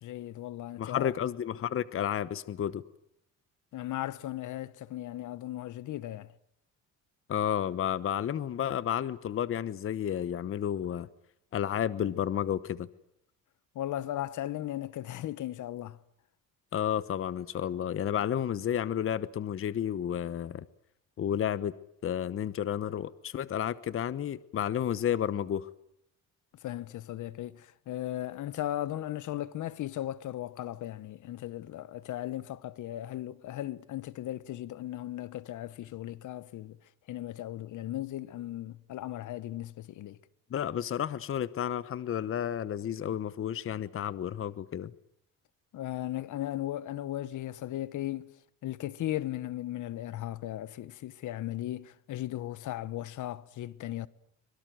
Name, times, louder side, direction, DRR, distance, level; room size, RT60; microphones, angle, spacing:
voice 1, 0.0-1.1 3.7-6.3 13.7-16.0 26.6-36.8 37.1-40.2 45.7-48.3 48.6-54.1, left 13 dB, 60° left, 1.1 m, -37 dB
voice 2, 0.8-2.8 7.3-11.1 11.5-12.9 16.7-20.6 21.2-21.7 22.0-25.7 40.5-44.9, left 10 dB, 40° left, 1.0 m, -31 dB
24.5 x 22.5 x 9.2 m
cardioid pair, 130°, 33 cm